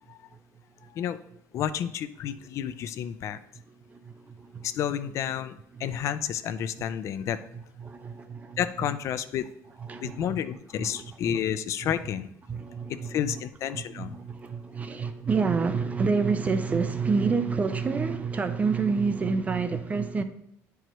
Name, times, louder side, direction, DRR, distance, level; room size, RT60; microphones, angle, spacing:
voice 1, 1.5-3.4 4.6-7.4 8.6-9.5 10.0-12.3 12.9-14.2, left 9 dB, 50° left, 0.4 m, -30 dB
voice 2, 3.7-4.7 5.7-5.9 7.5-8.6 9.8-10.4 10.8-11.4 12.5-13.4 13.7-20.2, right 5 dB, 25° right, 0.4 m, -28 dB
10.0 x 4.6 x 3.0 m
cardioid pair, 145°, 6 cm